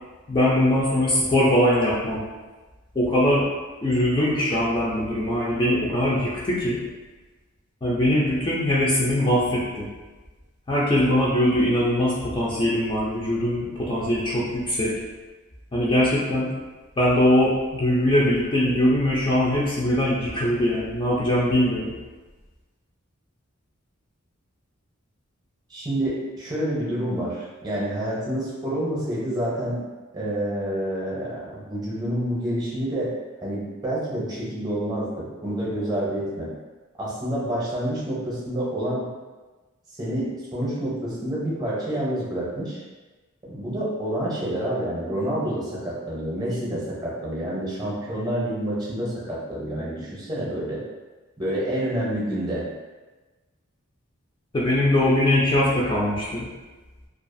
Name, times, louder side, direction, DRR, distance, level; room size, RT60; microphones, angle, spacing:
voice 1, 0.3-2.2 2.9-3.5 3.8-6.8 7.8-9.9 10.7-15.0 15.7-16.5 17.0-21.9 54.5-56.5, left 1 dB, 20° left, -6 dB, 0.4 m, -21 dB
voice 2, 25.7-29.8 30.1-33.1 33.4-36.5 37.0-39.1 39.9-42.8 43.5-50.8 51.4-52.7, right 1 dB, 20° right, -6 dB, 0.7 m, -28 dB
2.4 x 2.3 x 2.5 m, 1.2 s
head